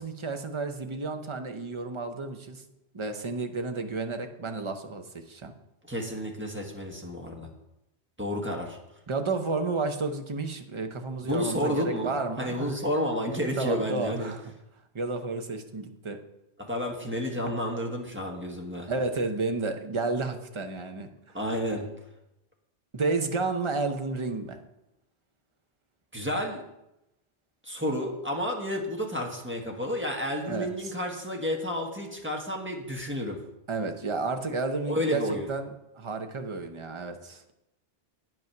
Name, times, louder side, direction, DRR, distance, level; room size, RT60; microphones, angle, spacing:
voice 1, 0.0-2.6 2.9-5.5 9.1-12.8 13.6-14.4 14.9-16.2 18.9-21.1 22.9-24.6 30.5-30.7 33.7-35.7 36.0-37.5, right 3 dB, 30° right, 6 dB, 0.7 m, -31 dB
voice 2, 5.8-7.5 8.2-8.8 11.3-14.3 16.7-18.9 21.3-21.9 26.1-26.6 27.6-33.4 34.9-35.5, equal, 10° right, 0 dB, 1.3 m, -31 dB
9.3 x 5.5 x 5.9 m, 0.88 s
omnidirectional pair, 1.1 m